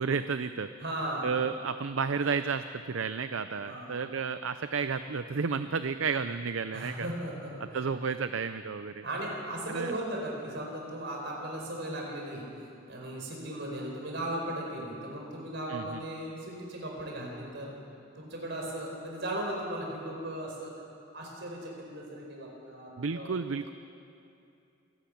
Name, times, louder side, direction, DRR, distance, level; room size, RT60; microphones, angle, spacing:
voice 1, 0.0-0.7 1.2-7.1 7.7-9.0 9.7-10.0 15.7-16.0 23.0-23.7, right 5 dB, 75° right, 11 dB, 0.6 m, -32 dB
voice 2, 0.8-1.3 3.7-3.9 6.7-7.5 9.0-12.4 12.9-17.7 18.2-20.7 21.1-23.4, right 1 dB, 60° right, -1 dB, 5.1 m, -37 dB
26.5 x 12.0 x 8.6 m, 2.6 s
head